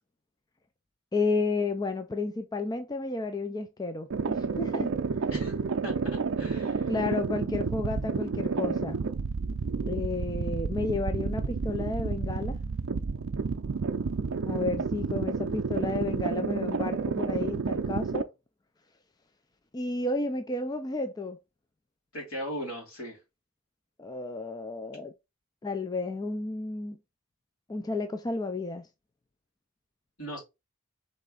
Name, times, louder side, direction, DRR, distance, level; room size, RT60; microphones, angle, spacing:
voice 1, 1.1-4.9 6.9-9.0 9.9-12.6 14.5-18.3 19.7-21.4 24.0-25.1 25.6-27.0 27.7-28.9, left 3 dB, 20° left, 0.3 m, -32 dB
sound 1, 4.1-18.2, right 4 dB, 70° right, 0.5 m, -30 dB
voice 2, 6.4-6.9 22.1-23.2 30.2-30.4, equal, 80° left, 2.8 m, -37 dB
4.1 x 3.3 x 3.7 m
head